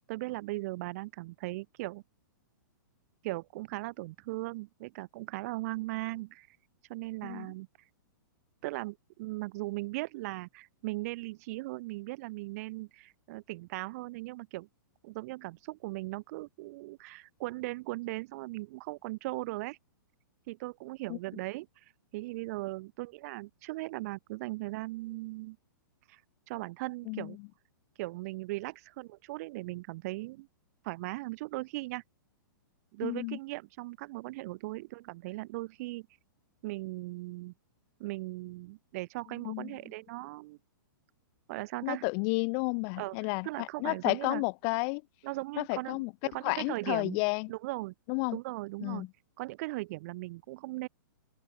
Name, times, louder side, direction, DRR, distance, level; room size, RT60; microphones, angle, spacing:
voice 1, 0.1-2.0 3.2-6.5 6.9-7.7 8.6-14.7 15.0-19.8 20.5-21.7 22.1-25.6 26.1-26.2 26.5-27.4 28.0-30.5 30.8-32.0 32.9-36.1 36.6-37.5 38.0-40.6 41.5-42.0 43.0-43.2 43.4-44.4 45.2-47.2 47.5-47.9 48.3-49.1 49.4-50.9, right 21 dB, 45° right, 4.7 m, -38 dB
voice 2, 33.0-33.4 39.4-39.7 41.8-45.0 45.6-46.1 46.4-47.5 48.1-48.4 48.8-49.1, left 40 dB or more, 35° left, 1.2 m, -31 dB
open air
hypercardioid pair, 145°, 11 cm